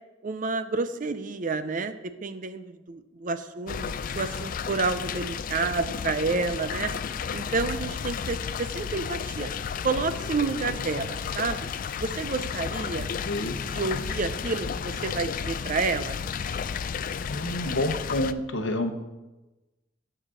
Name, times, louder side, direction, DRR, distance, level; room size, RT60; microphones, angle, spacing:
voice 1, 0.2-1.9 2.2-6.9 7.3-9.5 9.8-11.7 12.0-13.1 13.6-16.2, right 4 dB, 45° right, 11 dB, 0.5 m, -29 dB
sound 1, 3.7-18.3, left 6 dB, 45° left, 0.3 m, -32 dB
voice 2, 12.9-13.6 17.2-18.9, left 1 dB, 75° left, 7 dB, 0.9 m, -29 dB
10.0 x 4.9 x 6.2 m, 1.1 s
head